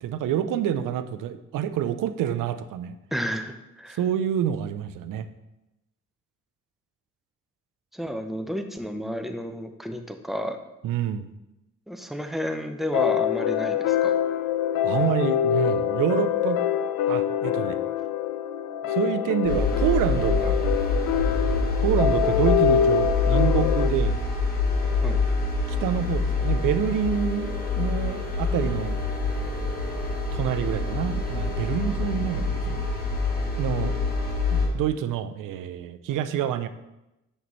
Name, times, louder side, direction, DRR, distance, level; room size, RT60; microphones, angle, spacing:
voice 1, 0.0-3.0 3.9-5.3 10.8-11.3 14.8-16.6 17.1-17.8 18.9-20.6 21.8-24.2 25.7-29.0 30.3-32.8 33.6-33.9 34.5-36.7, right 9 dB, 75° right, 11 dB, 0.5 m, -27 dB
voice 2, 3.1-4.0 7.9-10.6 11.9-14.1 25.0-25.2, equal, ahead, 6 dB, 0.5 m, -31 dB
sound 1, 12.9-23.9, left 10 dB, 80° left, 0.5 m, -25 dB
sound 2, 19.4-34.7, left 3 dB, 25° left, 1.5 m, -26 dB
5.9 x 5.5 x 3.0 m, 0.94 s
cardioid pair, 95°, 32 cm